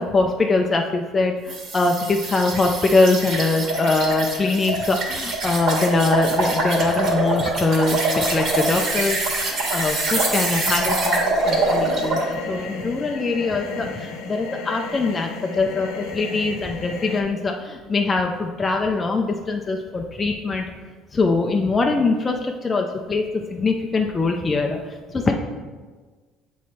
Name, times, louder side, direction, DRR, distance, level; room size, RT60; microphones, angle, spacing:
voice 1, 0.0-9.2 9.7-20.7 21.1-25.3, left 3 dB, 20° left, 2 dB, 0.5 m, -22 dB
sound 1, 1.5-12.3, right 2 dB, 55° right, 1.9 m, -24 dB
sound 2, 11.4-17.2, left 4 dB, 85° left, 0.9 m, -34 dB
7.6 x 3.1 x 4.2 m, 1.4 s
cardioid pair, 115°, 0 cm